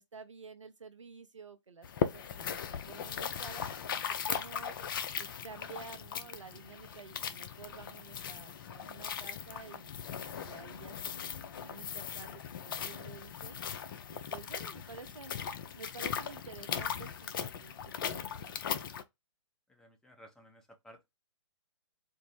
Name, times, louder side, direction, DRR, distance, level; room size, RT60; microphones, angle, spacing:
voice 1, 0.0-3.7 4.1-4.8 5.2-13.6 14.1-15.3 15.8-18.5, right 5 dB, 85° right, 0.7 m, -51 dB
sound 1, 1.8-19.0, left 7 dB, 45° left, 0.5 m, -39 dB
voice 2, 19.7-21.1, equal, 5° left, 0.7 m, -56 dB
4.5 x 2.0 x 4.5 m
figure-of-eight pair, 125°, 15 cm